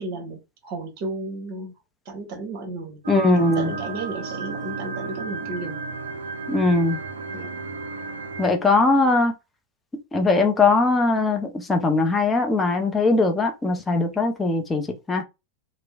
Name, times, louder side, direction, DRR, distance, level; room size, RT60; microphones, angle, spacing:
voice 1, 0.0-1.7 2.1-3.0 3.3-5.8 7.3-7.6, right 2 dB, 45° right, 1.0 m, -33 dB
sound 1, 3.0-8.5, right 4 dB, 70° right, 0.4 m, -33 dB
voice 2, 3.1-3.7 6.5-7.0 8.4-9.3 10.1-15.2, left 3 dB, 10° left, 0.6 m, -20 dB
3.0 x 2.0 x 2.3 m
figure-of-eight pair, 90°, 0 cm